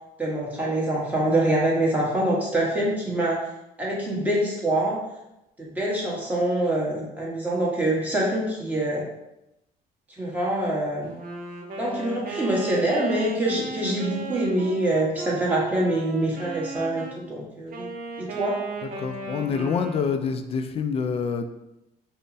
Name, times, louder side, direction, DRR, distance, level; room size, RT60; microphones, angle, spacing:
voice 1, 0.2-3.5 3.8-5.0 5.6-9.0 10.2-11.1 11.8-17.9 18.2-18.6, right 1 dB, 10° right, -5 dB, 1.2 m, -25 dB
Wind instrument woodwind instrument, 11.0-17.2 17.7-20.3, right 3 dB, 55° right, 0.7 m, -35 dB
voice 2, 19.0-21.5, left 6 dB, 35° left, 7 dB, 0.4 m, -26 dB
5.2 x 2.1 x 2.7 m, 0.90 s
cardioid pair, 110°, 17 cm